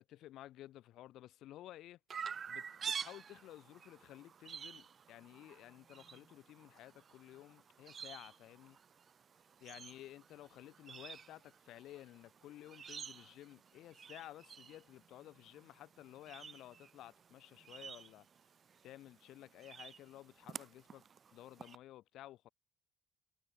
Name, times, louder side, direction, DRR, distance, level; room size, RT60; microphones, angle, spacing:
voice 1, 0.0-2.0 2.5-8.8 9.6-18.3 18.8-21.0 21.3-22.5, left 14 dB, 85° left, 2.7 m, -54 dB
Chirp tweet, 2.1-21.8, right 7 dB, 50° right, 1.0 m, -50 dB
cardioid pair, 90°, 0 cm